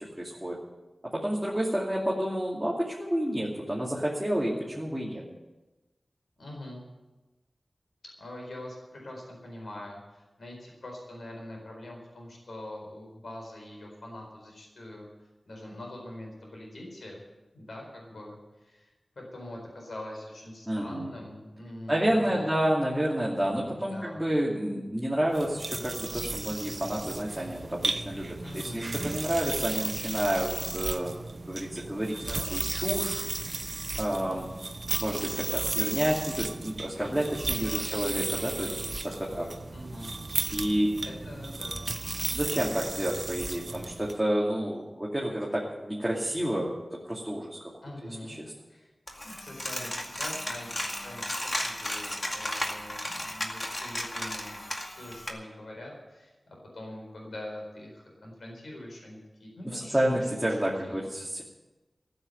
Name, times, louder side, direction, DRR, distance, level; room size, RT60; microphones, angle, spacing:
voice 1, 0.2-0.6 1.1-5.2 20.7-21.1 21.9-31.1 31.5-32.2 32.5-33.2 34.0-34.5 35.0-38.7 39.2-39.5 40.5-41.0 42.3-46.8 47.1-47.7 48.3-48.5 59.6-61.4, right 1 dB, 5° right, -5 dB, 2.6 m, -29 dB
voice 2, 6.4-6.8 8.2-15.1 15.5-17.2 17.5-22.5 23.8-24.2 28.4-28.9 32.1-32.5 37.5-40.2 40.7-41.9 47.8-48.4 48.7-48.9 49.2-60.3 60.8-61.0, left 1 dB, 85° left, 0 dB, 4.3 m, -44 dB
sound 1, 25.3-44.2, right 3 dB, 55° right, 0.8 m, -34 dB
Coin (dropping), 49.1-55.3, left 1 dB, 35° left, 2.1 m, -34 dB
14.5 x 7.9 x 9.2 m, 1.1 s
wide cardioid pair, 65°, 0 cm